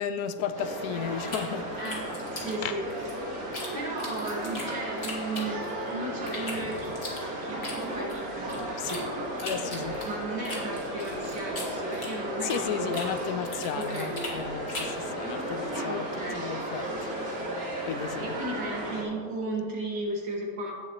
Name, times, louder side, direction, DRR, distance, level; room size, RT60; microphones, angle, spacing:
voice 1, 0.0-1.9 2.6-2.8 8.8-9.1 9.4-10.0 12.4-16.0 16.3-18.4, left 8 dB, 70° left, 1.0 m, -34 dB
sound 1, 0.6-19.0, right 1 dB, 55° right, 2.1 m, -34 dB
sound 2, 1.3-3.7 4.0-5.9 6.3-9.0 9.4-12.7 12.9-15.0, left 2 dB, 35° left, 2.0 m, -39 dB
voice 2, 1.8-2.8 3.7-6.9 7.4-9.3 10.0-13.1 13.7-14.1 15.9-16.5 18.2-20.7, right 2 dB, 75° right, 2.5 m, -35 dB
16.5 x 7.3 x 3.0 m
omnidirectional pair, 1.9 m